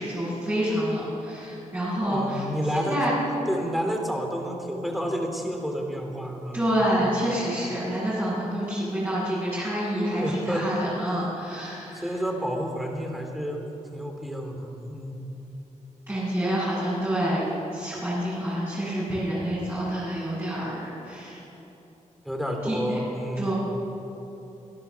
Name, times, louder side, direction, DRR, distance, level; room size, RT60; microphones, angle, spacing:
voice 1, 0.0-2.5 2.7-3.1 6.5-12.1 16.1-17.4 17.7-21.4 22.6-23.0 23.4-23.5, equal, 15° right, -10 dB, 7.4 m, -27 dB
voice 2, 2.0-3.0 3.5-7.1 10.1-10.7 11.9-13.6 13.9-15.3 22.2-23.5, equal, ahead, 2 dB, 3.0 m, -30 dB
26.5 x 17.5 x 6.9 m, 3.0 s
wide cardioid pair, 165°, 13 cm